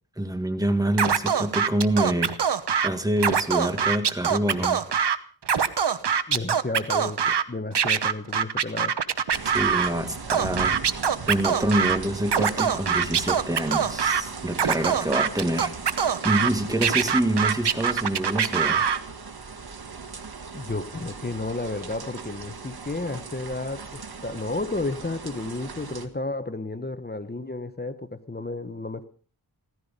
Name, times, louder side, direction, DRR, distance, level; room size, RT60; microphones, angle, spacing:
voice 1, 0.2-2.4 2.8-4.8 9.5-10.8 11.3-15.9 16.2-18.8, right 1 dB, 10° right, 7 dB, 1.9 m, -26 dB
Scratching (performance technique), 1.0-2.9 3.2-5.2 5.4-7.4 7.7-9.9 10.3-12.0 12.3-14.2 14.5-16.5 16.8-19.0, right 7 dB, 80° right, 1.0 m, -23 dB
voice 2, 6.3-8.9 14.7-14.8 16.4-16.5 20.5-29.0, left 2 dB, 25° left, 11 dB, 1.1 m, -32 dB
sound 1, 9.3-26.1, right 5 dB, 65° right, 1.7 m, -39 dB
16.5 x 14.0 x 5.3 m, 0.42 s
wide cardioid pair, 70°, 40 cm